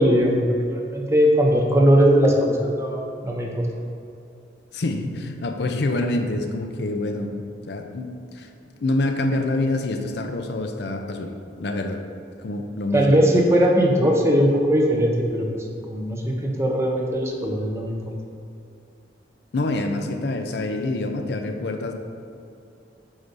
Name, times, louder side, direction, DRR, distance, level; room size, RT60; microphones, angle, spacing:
voice 1, 0.0-3.7 12.9-18.0, equal, 15° right, -1 dB, 0.6 m, -20 dB
voice 2, 4.7-8.5 8.8-11.3 11.6-12.0 12.4-13.2 19.5-21.9, left 2 dB, 65° left, 5 dB, 0.5 m, -26 dB
7.9 x 2.7 x 5.3 m, 2.6 s
head